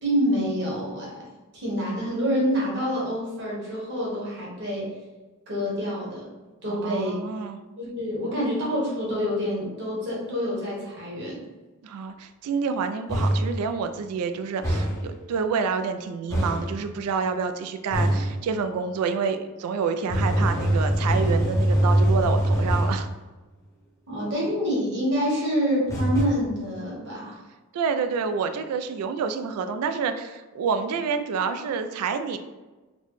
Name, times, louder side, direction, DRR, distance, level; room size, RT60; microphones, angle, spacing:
voice 1, 0.0-5.0 5.5-6.3 6.6-7.1 7.8-11.4 24.1-27.4, equal, 50° right, -5 dB, 1.2 m, -27 dB
voice 2, 6.7-7.6 11.8-23.1 27.7-32.4, right 5 dB, 80° right, 13 dB, 0.3 m, -28 dB
sound 1, 13.1-13.5 14.6-15.1 16.3-16.7 17.9-18.3 20.1-23.0 25.9-26.2, right 1 dB, 15° left, 0.5 m, -23 dB
4.1 x 2.1 x 3.1 m, 1.2 s
head